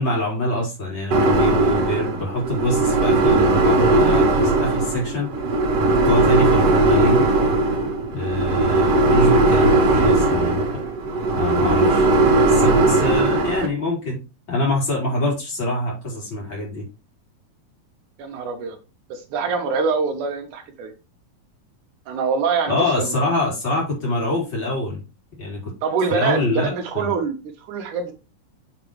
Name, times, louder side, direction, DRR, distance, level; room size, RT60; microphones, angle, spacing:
voice 1, 0.0-5.3 5.8-7.2 8.1-10.6 11.4-12.1 12.5-14.2 14.5-16.8 22.7-25.0 25.4-25.7 26.1-27.1, left 1 dB, 35° left, -3 dB, 4.3 m, -24 dB
sound 1, 1.1-13.7, right 2 dB, 55° right, 2.4 m, -18 dB
voice 2, 18.2-18.8 19.1-20.9 22.1-23.1 25.8-28.1, right 5 dB, 75° right, 5 dB, 2.4 m, -25 dB
7.0 x 6.1 x 3.1 m, 0.29 s
omnidirectional pair, 3.8 m